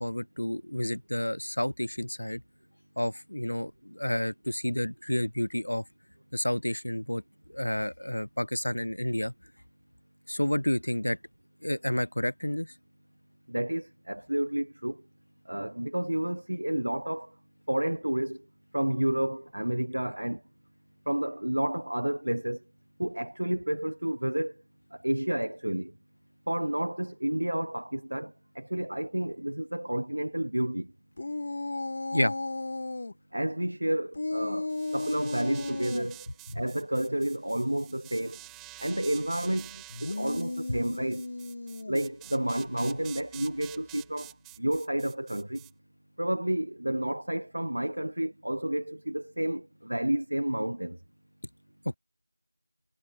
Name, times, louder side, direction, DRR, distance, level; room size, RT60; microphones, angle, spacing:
voice 1, 0.0-2.4 3.0-5.8 6.3-7.2 7.5-9.3 10.3-11.2 11.6-12.7 32.1-32.3 36.5-36.6, left 1 dB, 70° left, 0.8 m, -30 dB
voice 2, 13.5-15.0 15.5-17.3 17.7-18.4 18.7-20.4 21.1-22.6 23.0-24.6 24.9-25.9 26.5-30.9 33.3-36.3 36.5-38.4 38.8-41.2 41.9-45.6 46.2-51.0, right 1 dB, 65° right, 1.2 m, -30 dB
sound 1, 31.2-33.1 34.1-36.1 39.9-42.1, left 2 dB, 35° left, 1.7 m, -34 dB
sound 2, 34.7-45.7, right 21 dB, 5° right, 1.8 m, -49 dB
figure-of-eight pair, 170°, 0 cm